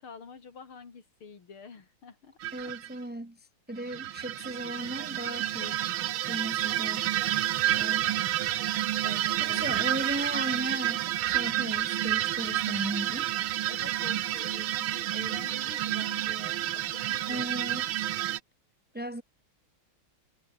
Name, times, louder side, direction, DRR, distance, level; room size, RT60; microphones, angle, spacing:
voice 1, 0.0-2.3 2.6-2.7 9.0-10.2 13.7-17.6, left 5 dB, 85° left, 3.8 m, -48 dB
sound 1, 2.4-2.9 3.8-18.4, right 13 dB, 80° right, 1.7 m, -30 dB
voice 2, 2.5-5.9 6.3-7.1 7.8-8.2 9.4-13.4 17.3-17.9 18.9-19.2, right 1 dB, 10° right, 0.5 m, -36 dB
omnidirectional pair, 2.3 m